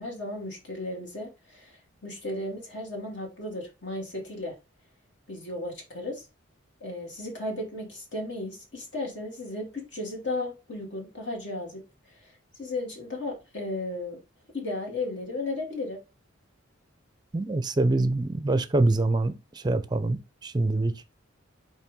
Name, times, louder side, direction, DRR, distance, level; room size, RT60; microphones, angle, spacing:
voice 1, 0.0-4.5 5.3-6.2 6.8-11.8 12.1-12.3 12.6-14.2 14.5-16.0, left 2 dB, 60° left, 2.4 m, -35 dB
voice 2, 17.3-20.9, right 2 dB, 20° right, 0.5 m, -25 dB
5.6 x 4.5 x 3.7 m
head